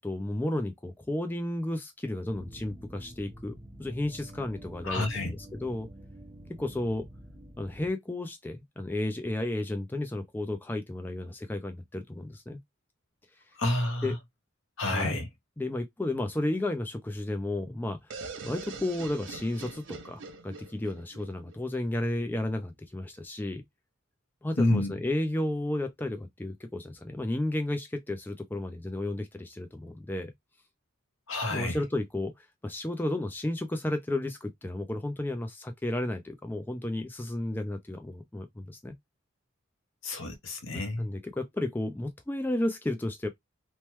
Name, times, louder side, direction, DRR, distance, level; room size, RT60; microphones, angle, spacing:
voice 1, 0.0-5.9 6.6-7.1 7.6-12.6 14.0-14.2 14.9-15.2 15.6-18.0 18.4-23.6 24.4-30.3 31.5-39.0 40.6-43.3, left 1 dB, 10° left, 0.3 m, -33 dB
sound 1, 2.3-7.9, equal, 25° right, 0.7 m, -47 dB
voice 2, 4.8-5.3 13.6-14.1 14.8-15.3 24.6-24.9 31.3-31.8 40.0-41.1, left 2 dB, 70° left, 0.9 m, -29 dB
sound 2, 18.1-21.9, right 4 dB, 60° right, 0.6 m, -43 dB
3.0 x 2.1 x 3.0 m
head